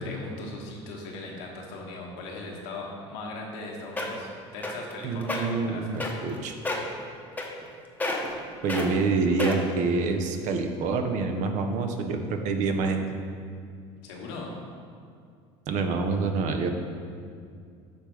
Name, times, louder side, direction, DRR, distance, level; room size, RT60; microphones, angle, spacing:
voice 1, 0.0-5.9 14.0-14.5, left 2 dB, 85° left, -1 dB, 1.2 m, -39 dB
sound 1, 3.5-3.6 4.0-4.3 4.6-4.9 5.2-5.4 6.0-6.4 6.7-6.9 7.4-7.7 8.0-8.4 8.7-8.9 9.4-9.8 10.4-10.5, left 2 dB, 10° left, 0.9 m, -29 dB
voice 2, 5.0-6.6 8.6-13.0 15.7-16.7, right 4 dB, 60° right, 6 dB, 0.7 m, -27 dB
6.6 x 3.4 x 5.9 m, 2.3 s
supercardioid pair, 105°, 14 cm